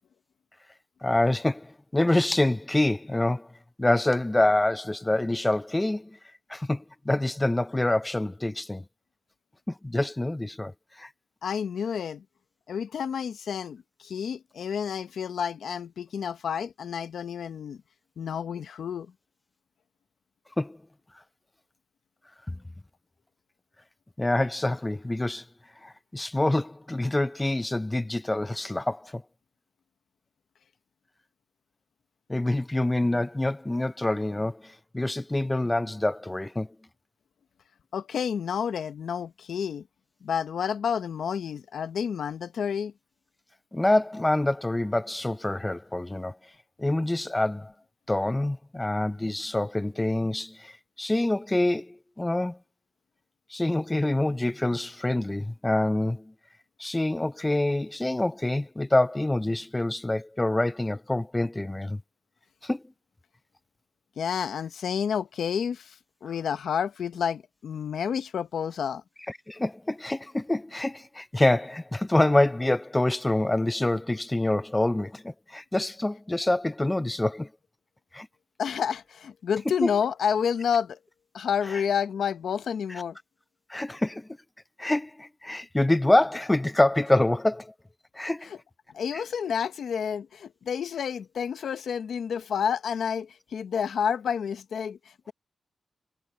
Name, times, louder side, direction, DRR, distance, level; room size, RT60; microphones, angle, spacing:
voice 1, 1.0-3.5 3.8-6.2 6.5-8.8 9.7-10.7 11.0-11.1 20.6-20.8 24.2-25.4 25.8-29.2 32.3-36.7 43.7-46.4 46.8-47.7 48.1-52.6 53.5-56.3 56.8-62.0 62.6-62.8 69.3-77.5 78.1-78.3 79.8-79.9 81.7-81.8 82.9-83.0 83.7-84.3 84.8-87.7 88.1-88.5 89.1-89.2, left 1 dB, 20° left, 0.4 m, -26 dB
voice 2, 11.4-12.2 12.7-17.8 18.2-19.1 37.9-39.8 40.2-42.9 64.2-69.0 78.6-81.0 81.3-83.2 88.5-88.6 88.9-95.0, left 7 dB, 85° left, 0.9 m, -30 dB
cardioid pair, 50°, 0 cm